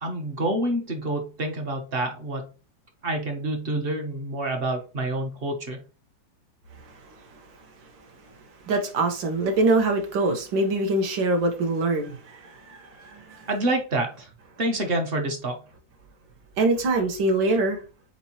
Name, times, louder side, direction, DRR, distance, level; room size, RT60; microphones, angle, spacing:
voice 1, 0.0-2.4 3.0-5.8 13.5-14.3 14.6-15.6, right 1 dB, 45° right, 0.7 m, -27 dB
voice 2, 6.8-7.4 8.7-13.5 16.6-17.8, right 2 dB, 80° right, 1.8 m, -24 dB
4.3 x 4.2 x 2.9 m
omnidirectional pair, 2.0 m